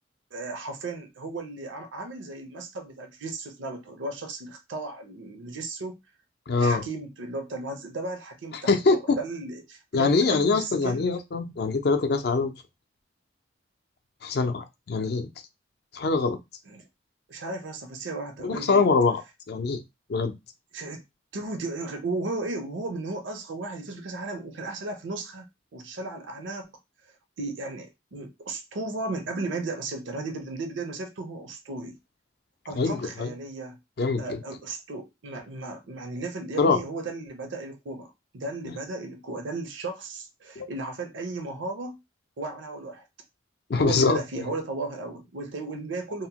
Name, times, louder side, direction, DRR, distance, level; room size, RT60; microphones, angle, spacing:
voice 1, 0.3-6.0 6.6-11.1 16.7-16.8 17.3-18.9 20.7-21.0 21.3-25.5 25.7-26.7 27.4-32.0 32.7-33.8 34.2-42.0 42.4-43.0 43.7-46.3, right 3 dB, 80° right, 0.6 m, -35 dB
voice 2, 6.5-6.8 8.7-9.2 9.9-12.5 14.2-15.3 15.9-16.4 18.4-19.2 19.5-19.8 20.1-20.3 32.7-33.3 34.0-34.4 36.6-36.8 40.6-40.7 43.7-44.2, left 4 dB, 55° left, 0.4 m, -23 dB
2.8 x 2.1 x 2.8 m
head